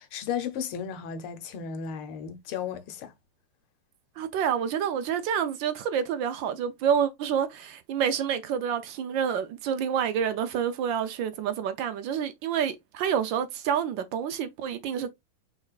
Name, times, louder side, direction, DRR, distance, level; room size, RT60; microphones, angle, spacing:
voice 1, 0.0-3.1, left 7 dB, 85° left, 1.7 m, -34 dB
voice 2, 4.2-15.1, right 8 dB, 70° right, 1.3 m, -28 dB
4.9 x 4.3 x 2.4 m
omnidirectional pair, 2.3 m